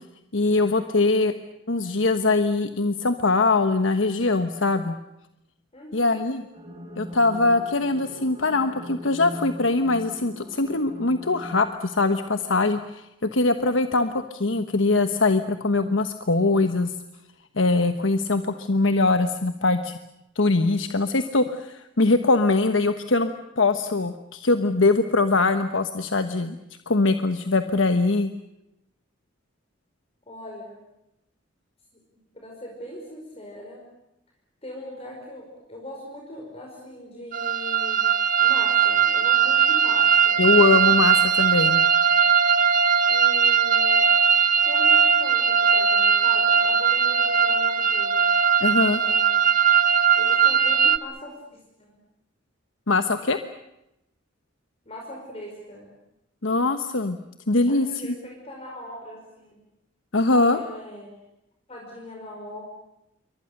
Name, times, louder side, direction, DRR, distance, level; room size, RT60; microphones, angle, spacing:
voice 1, 0.3-1.3 1.7-5.0 5.9-6.4 7.0-16.9 17.6-20.0 20.4-23.3 23.6-26.6 26.9-28.3 40.4-41.8 48.6-49.0 52.9-53.4 56.4-57.2 57.5-57.9 60.1-60.6, left 3 dB, 75° left, 8 dB, 1.2 m, -22 dB
voice 2, 5.7-6.2 30.3-30.8 32.3-33.8 34.6-38.0 38.4-40.5 43.1-44.1 44.7-48.3 48.9-49.5 50.2-52.0 54.9-55.9 57.7-57.8 58.0-59.6 60.3-61.1 61.7-62.6, left 1 dB, 30° left, -1 dB, 5.4 m, -40 dB
sound 1, 6.5-11.6, equal, 25° right, 6.9 m, -40 dB
sound 2, 37.3-51.0, right 7 dB, 45° right, 1.1 m, -19 dB
28.0 x 24.0 x 6.7 m, 0.86 s
head